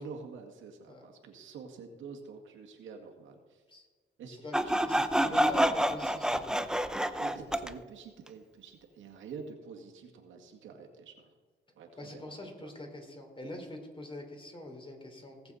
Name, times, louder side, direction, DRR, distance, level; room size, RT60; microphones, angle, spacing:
voice 1, 0.0-3.6 4.2-4.4 4.6-4.7 5.3-5.4 7.2-11.3 11.8-12.4 12.6-12.7, right 5 dB, 80° right, 2 dB, 2.0 m, -47 dB
Sawing, 4.5-7.7, equal, 5° right, 0.6 m, -28 dB
voice 2, 4.8-6.7 12.0-15.5, left 1 dB, 25° left, 2 dB, 3.1 m, -44 dB
18.0 x 7.4 x 4.1 m, 1.5 s
cardioid pair, 90°, 20 cm